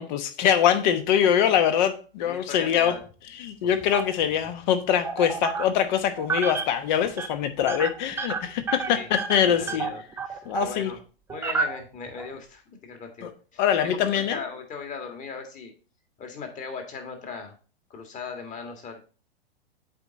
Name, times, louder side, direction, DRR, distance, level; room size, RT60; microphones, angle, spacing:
voice 1, 0.0-2.9 3.4-9.9 10.5-10.9 13.6-14.4, left 9 dB, 45° left, 1.1 m, -23 dB
voice 2, 2.2-3.1 3.6-3.7 8.9-9.1 9.4-11.0 11.3-15.7 16.2-17.5 17.9-19.1, left 5 dB, 25° left, 1.9 m, -38 dB
sound 1, 3.9-4.5 5.0-5.9 6.2-6.8 7.0-7.3 7.6-10.8 11.3-12.3, right 5 dB, 10° right, 0.5 m, -30 dB
8.2 x 4.3 x 4.0 m
hypercardioid pair, 110°, 31 cm